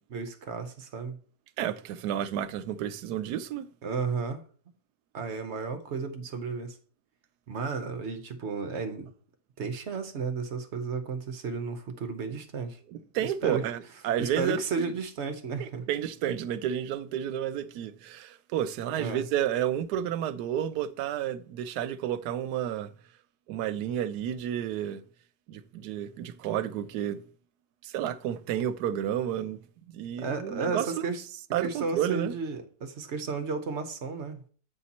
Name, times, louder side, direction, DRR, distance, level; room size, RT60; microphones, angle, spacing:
voice 1, 0.1-1.2 3.8-4.4 5.1-6.8 7.5-9.1 9.6-12.8 13.2-13.7 14.2-15.9 19.0-19.3 30.2-31.2 31.6-34.4, right 4 dB, 55° right, 0.9 m, -33 dB
voice 2, 1.6-3.7 12.9-14.9 15.6-22.9 23.5-25.0 25.5-27.2 27.8-29.6 29.9-31.1 31.5-32.3, right 10 dB, 80° right, 1.1 m, -31 dB
8.6 x 4.3 x 4.1 m
omnidirectional pair, 1.7 m